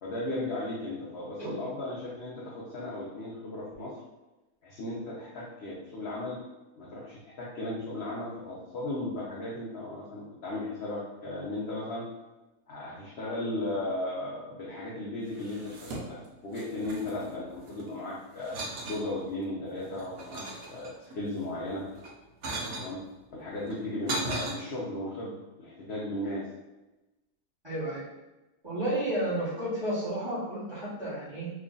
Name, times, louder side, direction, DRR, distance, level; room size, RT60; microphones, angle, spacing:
voice 1, 0.0-4.0 4.6-6.4 6.8-12.1 12.7-18.6 18.9-21.8 22.8-23.0 23.3-26.4, left 1 dB, 55° left, -6 dB, 0.9 m, -36 dB
sound 1, 15.3-16.3 16.5-17.9 18.4-19.1 19.6-21.2 21.9-22.9 23.6-24.5, right 2 dB, 70° right, 1.1 m, -37 dB
voice 2, 27.6-28.0 28.6-31.5, right 1 dB, 20° right, -10 dB, 1.2 m, -32 dB
3.1 x 2.4 x 3.8 m, 1.0 s
omnidirectional pair, 1.6 m